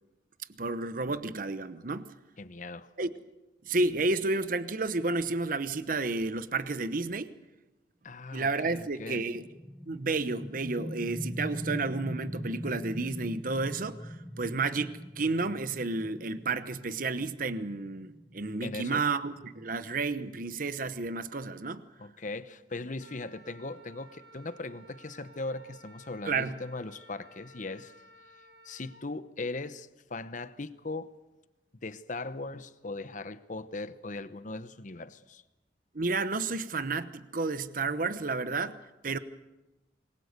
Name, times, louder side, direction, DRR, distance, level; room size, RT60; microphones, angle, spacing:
voice 1, 0.6-2.1 3.0-3.1 3.6-7.3 8.3-9.4 9.9-21.9 26.2-26.6 35.9-38.8 39.0-39.2, right 3 dB, 50° right, 1.0 m, -31 dB
voice 2, 2.4-2.9 8.0-9.3 18.6-19.0 22.0-27.9 28.6-31.1 31.8-35.4, left 2 dB, 45° left, 0.9 m, -39 dB
sound 1, 9.3-20.8, equal, ahead, 1.3 m, -42 dB
Wind instrument woodwind instrument, 23.0-29.0, right 1 dB, 80° right, 3.0 m, -56 dB
27.0 x 22.0 x 6.7 m
head